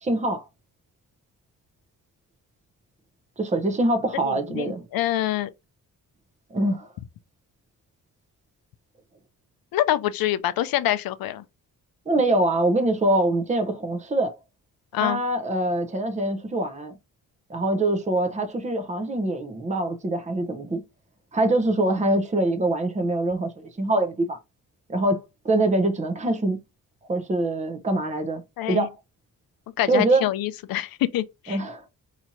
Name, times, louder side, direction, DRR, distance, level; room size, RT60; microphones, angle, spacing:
voice 1, 0.0-0.4 3.4-4.9 6.5-6.9 12.1-14.3 15.0-16.9 17.5-20.8 21.3-24.4 24.9-26.6 27.1-28.4 28.7-28.9 29.9-30.3 31.5-31.8, right 2 dB, 20° right, 0.8 m, -24 dB
voice 2, 4.2-5.5 9.7-11.4 14.9-15.2 28.6-28.9 29.8-31.6, left 13 dB, 70° left, 0.5 m, -26 dB
4.3 x 2.9 x 2.6 m
cardioid pair, 100°, 36 cm